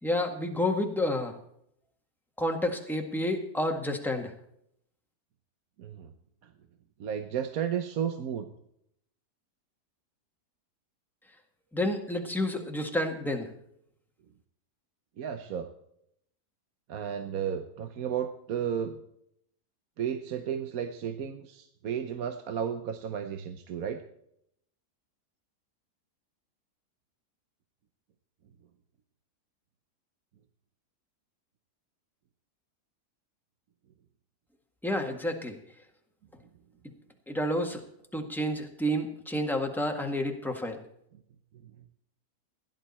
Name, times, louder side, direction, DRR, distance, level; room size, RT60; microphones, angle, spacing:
voice 1, 0.0-1.4 2.4-4.3 11.7-13.5 34.8-35.6 37.3-37.8 38.1-40.8, left 1 dB, ahead, 3 dB, 1.5 m, -30 dB
voice 2, 5.8-6.1 7.0-8.5 15.2-15.7 16.9-19.0 20.0-24.0 41.6-41.7, right 8 dB, 65° right, 8 dB, 1.3 m, -33 dB
16.5 x 11.5 x 4.3 m, 0.74 s
omnidirectional pair, 1.8 m